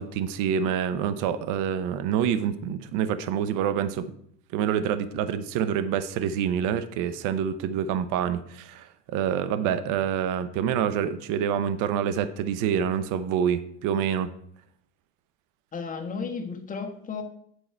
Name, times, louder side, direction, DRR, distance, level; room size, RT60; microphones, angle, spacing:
voice 1, 0.0-4.1 4.5-14.3, right 8 dB, 60° right, 11 dB, 0.8 m, -27 dB
voice 2, 15.7-17.2, left 5 dB, 25° left, 3 dB, 1.4 m, -33 dB
9.0 x 4.8 x 4.5 m, 0.67 s
supercardioid pair, 115°, 35 cm